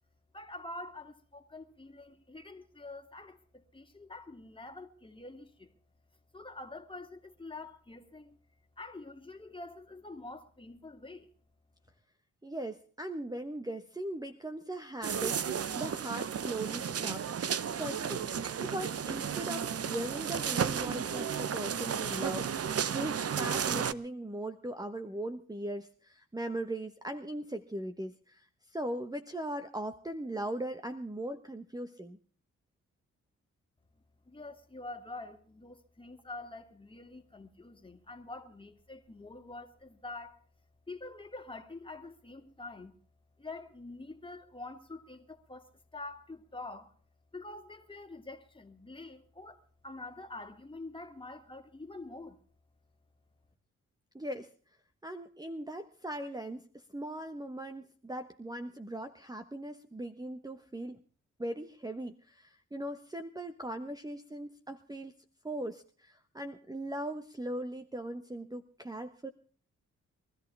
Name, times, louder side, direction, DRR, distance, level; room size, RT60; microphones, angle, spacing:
voice 1, 0.3-5.7 6.3-8.4 8.8-11.3 34.3-40.4 40.9-43.0 43.4-46.9 47.3-52.4, left 2 dB, 15° left, 2.6 m, -46 dB
voice 2, 12.4-17.3 17.8-18.3 18.6-32.2 54.1-54.5 55.0-61.0 61.4-65.2 65.4-69.3, right 1 dB, 10° right, 1.2 m, -39 dB
sound 1, 15.0-23.9, right 7 dB, 50° right, 0.9 m, -33 dB
23.0 x 14.0 x 3.4 m
cardioid pair, 65°, 31 cm